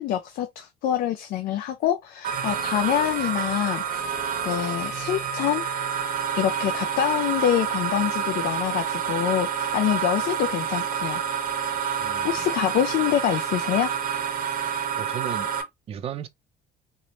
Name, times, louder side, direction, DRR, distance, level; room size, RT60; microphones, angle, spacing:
voice 1, 0.0-3.8 4.4-5.6 6.4-11.2 12.2-14.0, left 11 dB, 60° left, 0.4 m, -25 dB
sound 1, 2.2-15.6, right 7 dB, 55° right, 0.8 m, -28 dB
voice 2, 12.0-12.5 15.0-15.5 15.9-16.3, right 9 dB, 35° right, 0.4 m, -35 dB
3.0 x 2.0 x 2.6 m
cardioid pair, 150°, 18 cm